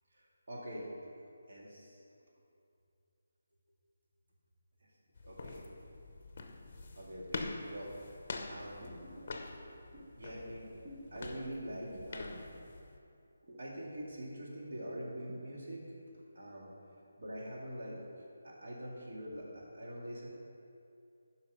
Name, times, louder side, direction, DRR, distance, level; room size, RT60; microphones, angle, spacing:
voice 1, 0.2-0.9 1.5-2.0 5.2-5.6 7.0-8.0 8.5-9.1 10.2-10.7 11.1-12.5 13.6-16.7 17.2-18.0 18.4-20.3, equal, 60° right, -4 dB, 2.3 m, -44 dB
sound 1, 5.2-13.0, left 3 dB, 35° left, 0.8 m, -46 dB
sound 2, 8.4-12.9 13.1-16.7 17.0-17.1, equal, 45° right, 1.6 m, -55 dB
9.1 x 5.7 x 5.6 m, 2.6 s
figure-of-eight pair, 170°, 0 cm